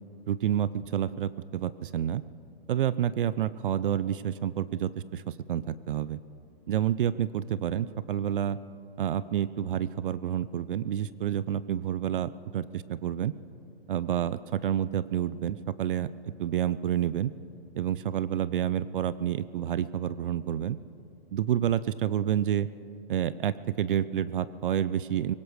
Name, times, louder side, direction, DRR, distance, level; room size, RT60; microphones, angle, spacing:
voice 1, 0.3-2.2 2.7-6.2 6.7-8.6 9.0-13.3 13.9-17.3 17.7-20.8 21.3-22.7 23.1-25.3, right 10 dB, 60° right, 17 dB, 0.5 m, -29 dB
23.0 x 19.0 x 3.3 m, 2.7 s
hypercardioid pair, 155°, 30 cm